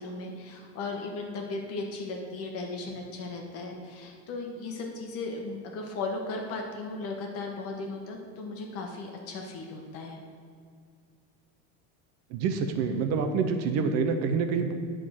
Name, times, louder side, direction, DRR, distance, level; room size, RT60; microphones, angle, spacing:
voice 1, 0.0-10.2, left 3 dB, 45° left, 2 dB, 1.2 m, -36 dB
voice 2, 12.3-14.7, right 5 dB, 50° right, 7 dB, 0.6 m, -27 dB
9.6 x 3.8 x 6.4 m, 2.3 s
cardioid pair, 170°, 34 cm